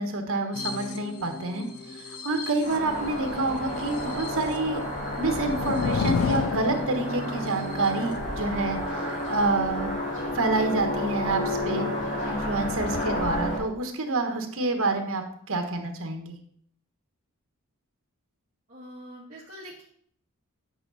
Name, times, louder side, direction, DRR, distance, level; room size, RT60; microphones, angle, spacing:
voice 1, 0.0-1.7 1.9-4.8 5.2-8.8 9.3-10.0 10.3-11.9 12.3-16.4, right 2 dB, 65° right, 6 dB, 1.3 m, -28 dB
sound 1, 0.5-8.2 8.6-8.7 9.0-9.5, left 4 dB, 75° left, 0.9 m, -43 dB
sound 2, 2.6-13.6, left 1 dB, 35° left, 2.5 m, -31 dB
sound 3, 4.7-7.6, left 6 dB, 55° left, 0.3 m, -30 dB
voice 2, 18.7-19.9, equal, 35° right, -6 dB, 1.5 m, -44 dB
8.9 x 6.0 x 4.0 m, 0.64 s
head